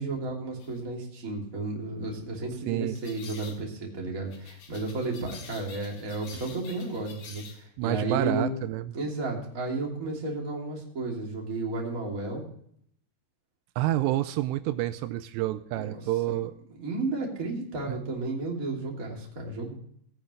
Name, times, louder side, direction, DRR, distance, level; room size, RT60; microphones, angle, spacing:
voice 1, 0.0-8.5 8.9-12.4 15.7-16.0 16.3-16.4 16.7-19.7, right 2 dB, 25° right, -2 dB, 2.5 m, -33 dB
sound 1, 0.6-0.8 3.0-3.6 4.3-7.6, left 5 dB, 55° left, 2.0 m, -48 dB
voice 2, 7.8-8.9 13.8-16.5 17.9-18.0, right 15 dB, 85° right, 12 dB, 2.7 m, -28 dB
17.5 x 8.9 x 3.2 m, 0.67 s
omnidirectional pair, 5.0 m